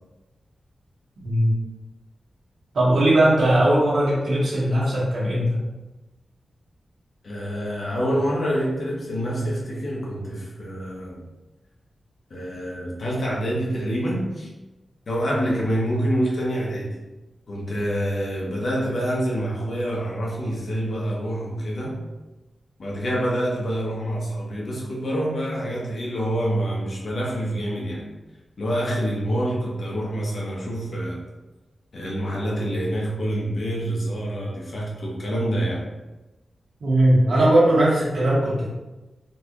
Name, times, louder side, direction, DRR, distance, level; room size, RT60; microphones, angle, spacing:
voice 1, 2.7-5.6 36.8-38.7, right 1 dB, 85° right, -7 dB, 1.3 m, -19 dB
voice 2, 7.2-11.2 12.3-14.5 15.1-16.9 17.5-22.0 22.8-28.1 28.6-31.2 31.9-35.8, equal, 55° left, -4 dB, 1.0 m, -26 dB
3.9 x 2.4 x 3.0 m, 1.1 s
wide cardioid pair, 125°, 0 cm